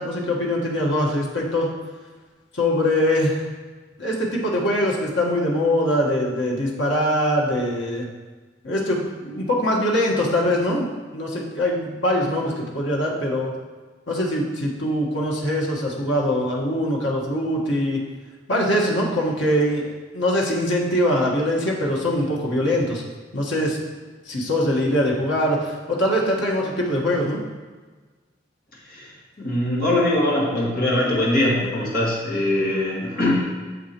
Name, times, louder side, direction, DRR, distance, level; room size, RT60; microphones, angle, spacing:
voice 1, 0.0-1.7 2.5-3.5 4.0-8.1 8.6-13.5 14.1-18.0 18.5-23.0 23.3-23.8 24.2-27.4, left 1 dB, 80° left, -3 dB, 1.4 m, -22 dB
voice 2, 28.8-33.5, left 1 dB, 50° left, -6 dB, 2.1 m, -22 dB
8.2 x 7.1 x 3.0 m, 1.4 s
head